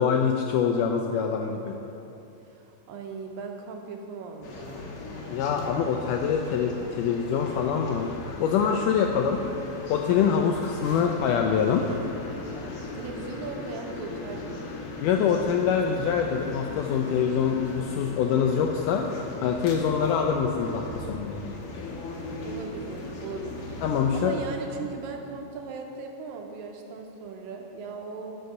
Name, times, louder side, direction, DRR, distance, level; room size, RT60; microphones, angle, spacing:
voice 1, 0.0-1.7 5.3-9.4 9.9-11.8 15.0-19.1 19.4-21.6 23.8-24.4, left 7 dB, 85° left, 3 dB, 1.8 m, -25 dB
voice 2, 2.5-5.0 12.9-14.9 22.4-23.8 24.1-28.4, right 4 dB, 80° right, 2 dB, 2.5 m, -38 dB
sound 1, 4.4-24.4, left 2 dB, 60° left, 1.6 m, -38 dB
12.0 x 5.7 x 6.4 m, 2.9 s
omnidirectional pair, 4.2 m